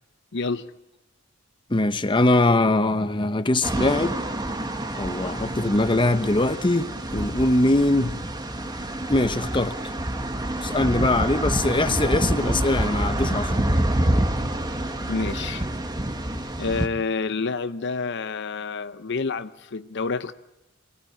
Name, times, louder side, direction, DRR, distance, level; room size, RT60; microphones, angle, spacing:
voice 1, 0.3-0.7 15.1-15.7 16.6-20.3, left 4 dB, 60° left, 0.8 m, -28 dB
voice 2, 1.7-4.2 4.9-8.2 9.1-9.7 10.6-13.7, left 2 dB, 25° left, 0.9 m, -22 dB
sound 1, 3.6-16.9, right 1 dB, 20° right, 1.4 m, -27 dB
24.5 x 17.5 x 8.7 m
head